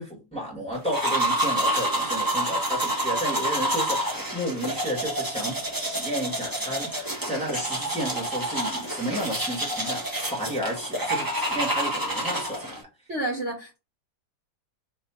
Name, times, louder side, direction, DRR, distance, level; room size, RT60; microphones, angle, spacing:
voice 1, 0.0-12.8, equal, 5° left, 1.5 m, -32 dB
sound 1, 0.8-12.8, right 1 dB, 15° right, 1.0 m, -28 dB
voice 2, 13.1-13.8, right 1 dB, 50° right, 1.0 m, -30 dB
3.2 x 3.2 x 4.2 m
omnidirectional pair, 1.7 m